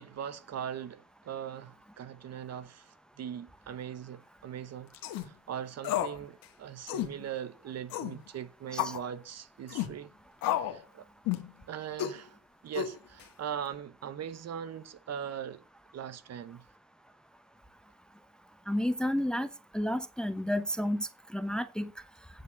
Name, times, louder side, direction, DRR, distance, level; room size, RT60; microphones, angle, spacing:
voice 1, 0.0-10.1 10.5-11.1 11.7-12.4 12.6-15.6 15.9-16.6, right 9 dB, 45° right, 0.9 m, -40 dB
sound 1, 4.9-5.3 5.8-6.2 6.4-6.5 6.9-7.1 7.9-8.2 8.8-9.0 9.7-9.9 10.4-10.8 11.3-11.5 12.0-12.2 12.7-13.2, left 12 dB, 65° left, 1.4 m, -31 dB
voice 2, 18.7-19.5 19.7-21.9, equal, ahead, 0.7 m, -31 dB
9.0 x 4.6 x 7.1 m
supercardioid pair, 80°, 36 cm